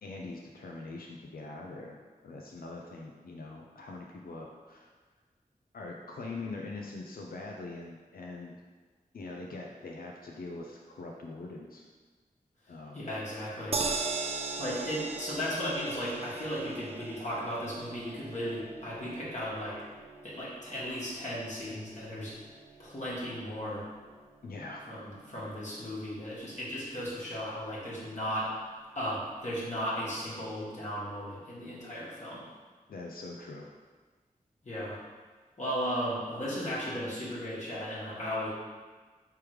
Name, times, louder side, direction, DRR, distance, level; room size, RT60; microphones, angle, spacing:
voice 1, 0.0-4.9 5.7-8.6 9.1-11.8 12.7-13.1 16.7-16.8 24.4-24.9 32.9-33.7, left 3 dB, 80° left, -1 dB, 0.5 m, -43 dB
voice 2, 12.9-13.8 14.6-19.8 20.2-22.3 22.8-23.8 24.9-28.5 28.9-32.4 34.6-35.0 35.6-38.5, equal, 55° left, -8 dB, 1.5 m, -35 dB
sound 1, 13.7-26.0 26.3-26.4 26.7-26.8, right 3 dB, 40° right, 0.4 m, -40 dB
3.4 x 3.1 x 4.8 m, 1.4 s
cardioid pair, 40°, 15 cm